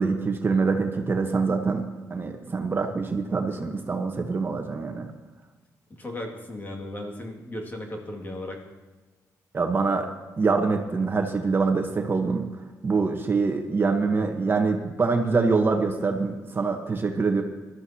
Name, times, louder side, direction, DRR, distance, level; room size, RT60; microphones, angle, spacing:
voice 1, 0.0-5.1 9.5-10.1 10.4-12.5 12.8-17.4, right 4 dB, 35° right, 4 dB, 1.2 m, -25 dB
voice 2, 6.0-8.6, left 1 dB, 30° left, 1 dB, 2.3 m, -36 dB
19.5 x 13.0 x 2.9 m, 1.3 s
cardioid pair, 95°, 7 cm